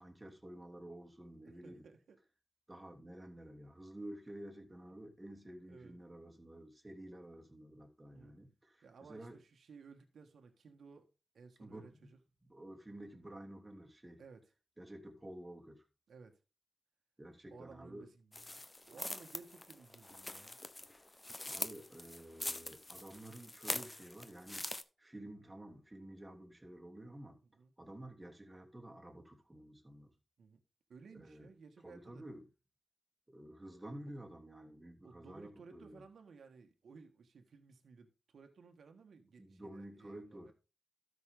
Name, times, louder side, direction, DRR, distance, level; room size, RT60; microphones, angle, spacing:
voice 1, 0.0-1.9 2.7-9.4 11.6-12.1 12.4-14.2 14.8-15.8 17.2-18.1 21.4-24.7 25.0-27.4 27.8-30.1 31.1-31.5 31.8-32.4 33.3-36.0 39.4-40.5, right 1 dB, 20° right, 2.9 m, -51 dB
voice 2, 1.6-2.2 4.8-4.9 5.7-6.0 8.1-8.4 8.8-11.1 11.3-12.2 14.2-14.4 16.1-16.4 17.5-20.6 27.5-27.7 30.4-30.6 30.9-32.2 35.0-40.5, right 5 dB, 90° right, 1.4 m, -57 dB
sound 1, 18.3-24.8, left 2 dB, 25° left, 1.0 m, -44 dB
13.0 x 6.3 x 3.7 m
cardioid pair, 65°, 0 cm